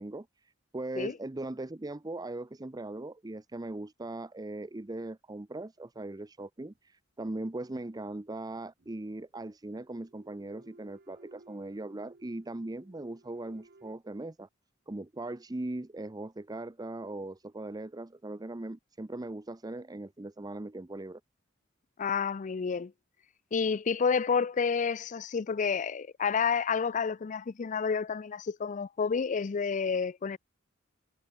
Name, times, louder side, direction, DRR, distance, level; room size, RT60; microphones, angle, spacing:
voice 1, 0.0-14.5 14.9-21.2, right 2 dB, 20° right, 0.6 m, -39 dB
sound 1, 6.7-6.8 8.8-9.3 9.9-13.9, right 2 dB, 50° right, 1.1 m, -58 dB
voice 2, 22.0-22.9 23.5-30.4, left 6 dB, 40° left, 0.4 m, -29 dB
head